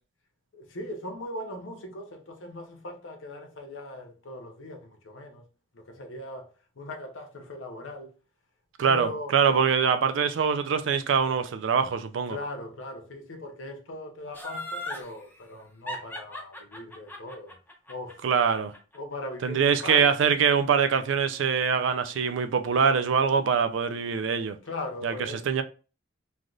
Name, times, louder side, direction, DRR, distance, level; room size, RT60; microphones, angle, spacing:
voice 1, 0.5-5.4 5.7-8.2 8.8-9.4 12.3-17.6 17.9-18.2 18.9-20.3 24.6-25.5, left 2 dB, 75° left, 0.7 m, -39 dB
voice 2, 8.8-12.4 18.2-18.7 19.4-24.6 25.0-25.1 25.5-25.6, right 6 dB, 70° right, 0.4 m, -24 dB
Laughter, 14.3-15.1 15.9-19.0 19.3-19.4, left 1 dB, 10° left, 0.7 m, -37 dB
3.3 x 2.6 x 2.3 m
head